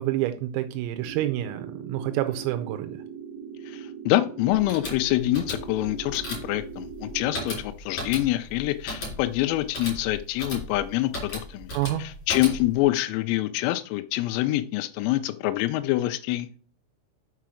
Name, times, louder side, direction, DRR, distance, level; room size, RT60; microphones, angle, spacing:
voice 1, 0.0-3.0 11.7-12.0, right 14 dB, 85° right, 8 dB, 3.4 m, -28 dB
sound 1, 1.0-7.5, right 7 dB, 70° right, 3.4 m, -40 dB
voice 2, 3.7-11.7 12.0-16.5, left 16 dB, 85° left, 7 dB, 3.3 m, -26 dB
sound 2, 4.5-12.9, left 1 dB, 35° left, 3.5 m, -36 dB
6.8 x 5.7 x 6.2 m, 0.42 s
omnidirectional pair, 6.0 m